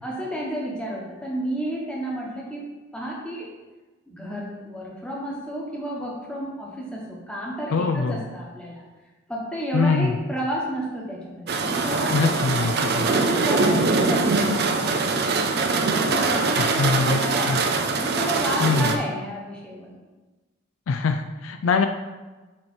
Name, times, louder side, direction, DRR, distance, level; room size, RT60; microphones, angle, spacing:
voice 1, 0.0-2.7 2.9-3.5 4.1-8.8 9.3-12.5 13.1-14.5 15.9-17.6 17.9-19.9, equal, 5° left, -4 dB, 1.1 m, -31 dB
voice 2, 7.7-8.2 9.7-10.2 12.1-13.1 16.6-17.2 17.5-17.6 18.6-18.9 20.9-21.9, left 4 dB, 65° left, 7 dB, 0.4 m, -23 dB
sound 1, 11.5-19.0, right 3 dB, 50° right, 0.5 m, -23 dB
7.4 x 3.2 x 4.3 m, 1.2 s
head